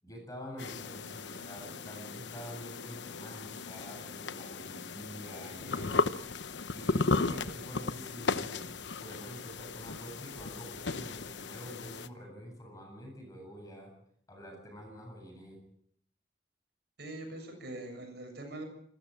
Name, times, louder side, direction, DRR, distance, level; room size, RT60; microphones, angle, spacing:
voice 1, 0.0-6.2 6.7-8.7 9.0-13.9 14.3-15.6, equal, 20° left, 2 dB, 7.9 m, -46 dB
sound 1, 0.6-12.1, left 3 dB, 80° left, 1.0 m, -35 dB
voice 2, 17.0-18.6, right 2 dB, 65° right, 3 dB, 7.3 m, -42 dB
27.0 x 14.0 x 9.0 m, 0.66 s
head